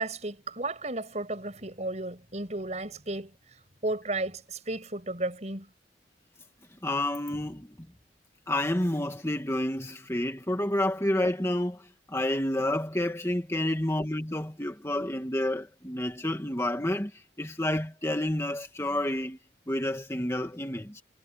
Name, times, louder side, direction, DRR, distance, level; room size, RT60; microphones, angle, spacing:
voice 1, 0.0-3.3 3.8-5.7, right 2 dB, 40° right, 6.2 m, -33 dB
voice 2, 6.8-7.8 8.5-19.4 19.7-21.0, left 1 dB, 15° left, 1.9 m, -29 dB
head